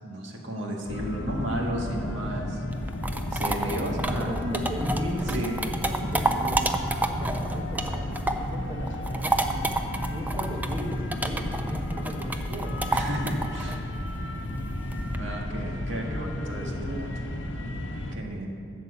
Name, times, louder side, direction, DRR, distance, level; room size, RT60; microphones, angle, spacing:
voice 1, 0.0-2.6 3.3-4.3 5.3-5.5 12.9-13.9 15.1-17.0 18.1-18.5, right 1 dB, 75° right, 0 dB, 1.8 m, -33 dB
sound 1, 0.9-18.2, left 1 dB, 70° left, 0.9 m, -33 dB
sound 2, 2.7-8.6 8.9-15.2, right 2 dB, 10° right, 0.5 m, -29 dB
voice 2, 4.1-5.4 5.7-6.7 7.0-9.7 10.1-12.8 15.9-17.0, equal, 25° right, -1 dB, 1.2 m, -36 dB
12.5 x 7.6 x 7.0 m, 2.5 s
head